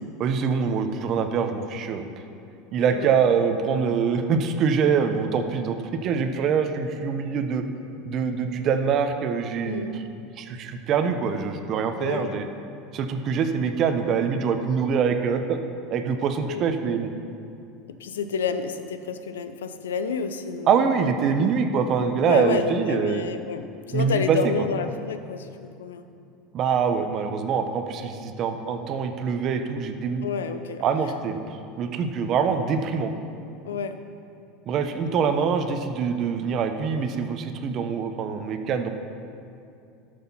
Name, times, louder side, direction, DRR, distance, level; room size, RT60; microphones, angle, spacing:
voice 1, 0.2-2.1 2.7-7.6 8.0-9.9 10.4-12.5 12.9-15.6 15.9-17.1 20.7-23.2 23.9-24.5 26.5-30.3 30.8-33.1 34.7-38.9, right 6 dB, 50° right, 7 dB, 1.0 m, -24 dB
voice 2, 9.6-10.0 12.0-12.4 16.5-16.6 17.9-21.0 22.2-26.0 30.2-31.1 33.7-34.0, left 6 dB, 85° left, 10 dB, 0.7 m, -30 dB
12.0 x 6.6 x 5.7 m, 2.6 s
hypercardioid pair, 90°, 0 cm